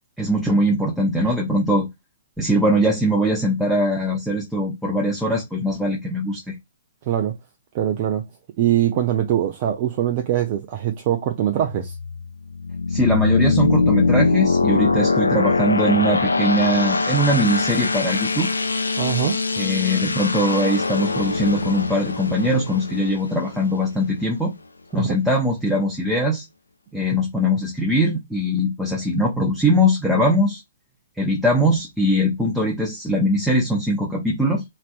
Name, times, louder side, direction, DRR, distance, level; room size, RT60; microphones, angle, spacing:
voice 1, 0.2-1.9 2.4-6.6 12.9-18.5 19.6-24.5 24.9-26.4 26.9-30.6 31.2-34.6, equal, ahead, 0.7 m, -21 dB
voice 2, 7.1-7.4 7.7-8.3 8.6-11.9 19.0-19.4 24.9-25.2, right 11 dB, 40° right, 0.4 m, -22 dB
sound 1, 11.6-24.2, left 3 dB, 75° left, 0.4 m, -22 dB
3.1 x 2.6 x 2.5 m
figure-of-eight pair, 120°, 0 cm